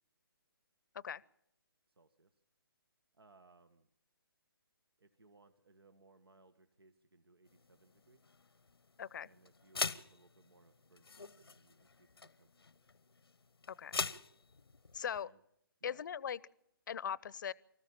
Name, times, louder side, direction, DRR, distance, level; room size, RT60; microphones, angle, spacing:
voice 1, 2.0-2.4 3.1-3.9 5.0-8.2 9.2-12.5 15.0-15.4 15.8-16.0, right 3 dB, 80° right, 10 dB, 1.5 m, -65 dB
sound 1, 7.5-15.2, left 4 dB, 85° left, 0.9 m, -44 dB
voice 2, 9.0-9.3 13.7-14.0 14.9-15.3 15.8-16.4 16.9-17.5, left 8 dB, 55° left, 23 dB, 0.7 m, -40 dB
25.0 x 14.0 x 7.3 m, 0.77 s
figure-of-eight pair, 140°, 13 cm